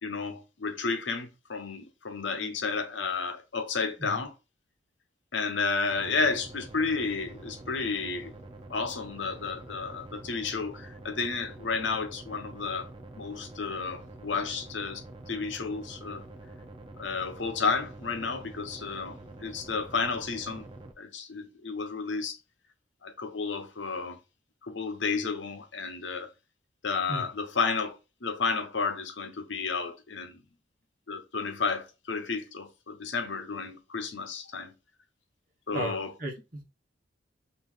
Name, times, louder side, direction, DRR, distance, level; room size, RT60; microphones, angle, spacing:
voice 1, 0.0-4.3 5.3-8.3 8.7-12.9 13.1-16.2 17.0-20.6 21.0-22.4 23.0-24.2 24.6-26.3 26.8-30.4 31.1-34.7 35.7-36.1, left 4 dB, 75° left, 0.9 m, -32 dB
sound 1, 5.9-20.9, right 2 dB, 25° right, 0.6 m, -46 dB
voice 2, 35.7-36.6, right 1 dB, 50° right, 1.1 m, -35 dB
5.4 x 2.8 x 3.3 m
head